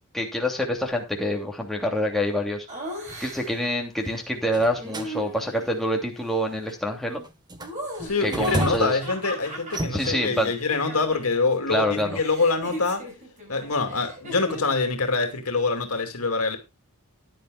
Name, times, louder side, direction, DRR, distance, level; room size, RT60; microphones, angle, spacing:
voice 1, 0.1-2.7 3.2-7.3 8.2-9.0 9.9-10.5 11.7-12.2, equal, ahead, 2.8 m, -26 dB
Laughter, 2.7-3.7 4.8-5.8 7.6-11.5 11.7-14.8, right 1 dB, 35° right, 5.9 m, -37 dB
sound 1, 3.1-3.3 4.5-5.1 5.7-6.0 6.7-6.9 7.2-9.1 9.6-10.1, equal, 20° right, 1.3 m, -32 dB
voice 2, 8.0-13.1 13.5-16.6, left 4 dB, 75° left, 2.4 m, -25 dB
15.0 x 11.0 x 2.4 m
head